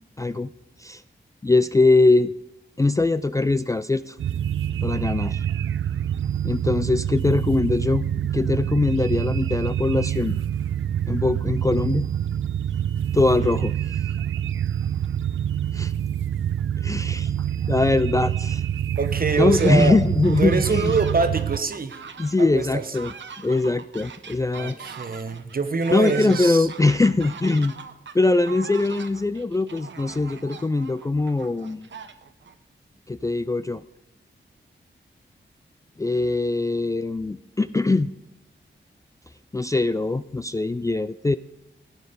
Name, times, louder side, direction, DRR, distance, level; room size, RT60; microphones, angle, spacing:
voice 1, 0.2-0.5 0.8-1.0 1.4-2.3 2.8-4.2 4.8-5.5 6.4-8.1 8.3-10.4 11.1-12.1 13.1-13.7 15.7-15.9 16.8-17.3 17.7-18.6 19.4-20.9 22.2-24.8 25.9-27.7 28.1-31.9 33.1-33.8 36.0-38.1 39.5-41.4, left 2 dB, 15° left, 13 dB, 0.3 m, -22 dB
sound 1, 4.2-21.6, right 10 dB, 85° right, 0.4 m, -26 dB
voice 2, 19.0-20.0 20.4-22.0 22.4-22.8 24.6-26.7, right 4 dB, 50° right, 9 dB, 1.0 m, -24 dB
sound 2, 19.0-19.9 20.2-32.5, right 6 dB, 70° right, 0.8 m, -41 dB
15.0 x 9.5 x 5.2 m, 0.94 s
wide cardioid pair, 90°, 20 cm